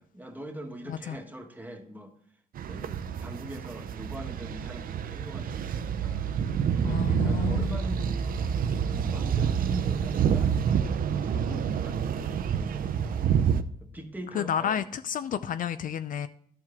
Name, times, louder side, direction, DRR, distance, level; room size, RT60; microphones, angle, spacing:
voice 1, 0.0-2.1 2.7-6.3 6.8-8.3 8.9-10.6 11.1-13.5 13.8-14.8, equal, 10° right, 1.3 m, -42 dB
voice 2, 0.9-1.2 6.8-7.8 14.3-16.3, left 9 dB, 60° left, 0.4 m, -31 dB
sound 1, 2.6-13.6, right 7 dB, 65° right, 0.5 m, -28 dB
12.0 x 4.6 x 3.6 m
cardioid pair, 110°, 16 cm